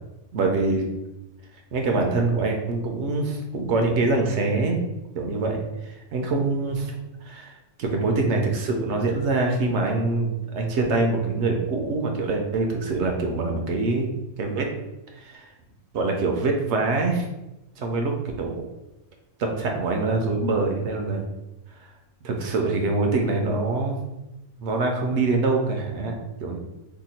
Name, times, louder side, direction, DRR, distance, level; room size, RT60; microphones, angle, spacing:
voice 1, 0.3-0.9 1.7-4.8 5.1-6.9 7.2-7.5 7.8-14.1 14.4-14.7 15.2-15.5 15.9-17.3 17.8-18.1 18.4-18.6 19.4-21.2 22.2-24.0 24.6-26.1 26.4-26.6, right 3 dB, 70° right, 2 dB, 0.8 m, -24 dB
2.8 x 2.2 x 4.1 m, 0.97 s
omnidirectional pair, 1.3 m